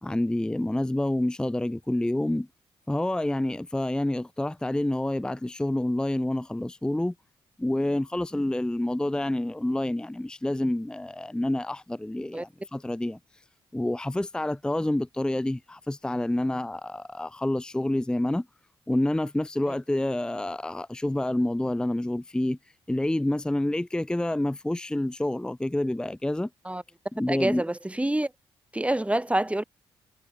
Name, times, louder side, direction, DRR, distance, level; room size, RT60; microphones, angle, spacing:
voice 1, 0.0-2.5 2.9-7.1 7.6-13.2 13.7-18.5 18.9-22.6 22.9-26.5 27.2-27.6, left 1 dB, 10° left, 0.5 m, -28 dB
voice 2, 27.3-28.3 28.7-29.6, right 1 dB, 10° right, 2.9 m, -27 dB
supercardioid pair, 55°, 10 cm